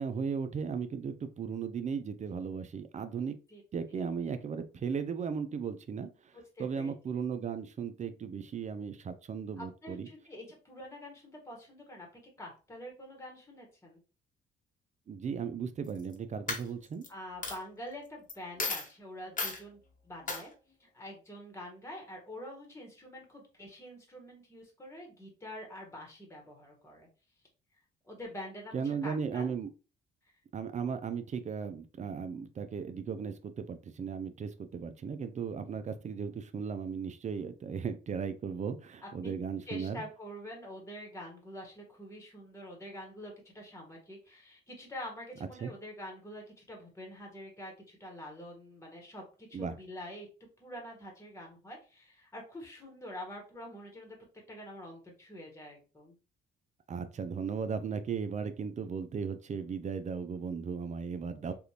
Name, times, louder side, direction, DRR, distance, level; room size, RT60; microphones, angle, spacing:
voice 1, 0.0-3.4 3.7-10.1 15.1-17.0 28.7-29.7 30.5-40.0 45.6-45.7 49.5-49.7 56.9-61.5, right 6 dB, 35° right, 10 dB, 0.5 m, -36 dB
voice 2, 6.3-6.9 9.6-12.1 12.4-14.0 17.1-20.5 20.8-27.1 28.0-29.5 39.0-39.3 39.6-50.3 50.6-54.2 54.5-56.1, left 1 dB, 15° left, 0 dB, 1.3 m, -46 dB
Coin (dropping), 15.8-16.1 16.5-17.1 17.4-17.6 18.3-18.4 18.6-18.9 19.4-19.6 20.3-20.4, left 3 dB, 40° left, 1.1 m, -34 dB
3.4 x 2.4 x 2.8 m, 0.33 s
cardioid pair, 90°, 20 cm